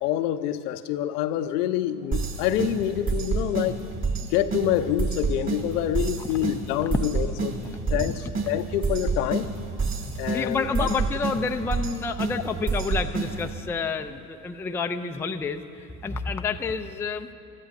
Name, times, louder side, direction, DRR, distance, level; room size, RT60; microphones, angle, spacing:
voice 1, 0.0-3.8 4.2-7.6 7.9-9.5 10.2-10.9, left 11 dB, 70° left, 11 dB, 0.7 m, -27 dB
sound 1, 2.1-13.6, right 4 dB, 35° right, 2.6 m, -29 dB
voice 2, 9.9-17.3, left 4 dB, 5° left, 6 dB, 0.4 m, -29 dB
24.0 x 13.5 x 2.6 m, 2.6 s
hypercardioid pair, 75°, 48 cm